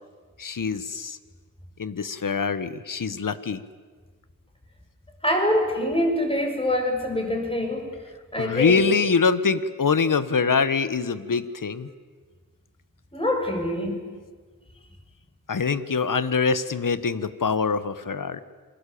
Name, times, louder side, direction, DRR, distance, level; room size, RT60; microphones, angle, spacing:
voice 1, 0.4-1.2 1.8-3.6 8.4-11.9 15.5-18.4, left 5 dB, 70° left, 14 dB, 1.4 m, -24 dB
voice 2, 5.2-7.9 8.3-8.8 13.1-14.0, left 1 dB, 15° left, 2 dB, 6.7 m, -24 dB
27.5 x 22.5 x 8.6 m, 1.5 s
wide cardioid pair, 65°, 34 cm